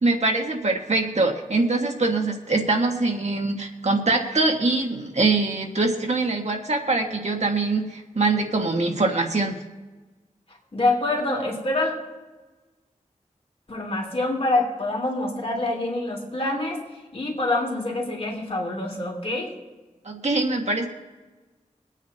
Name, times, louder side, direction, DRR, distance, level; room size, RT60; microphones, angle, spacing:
voice 1, 0.0-9.6 20.0-20.9, right 3 dB, 60° right, 1 dB, 1.7 m, -23 dB
voice 2, 10.7-11.9 13.7-16.8 17.1-19.6, left 2 dB, 50° left, -1 dB, 3.1 m, -26 dB
24.0 x 9.2 x 2.9 m, 1.2 s
wide cardioid pair, 80°, 13 cm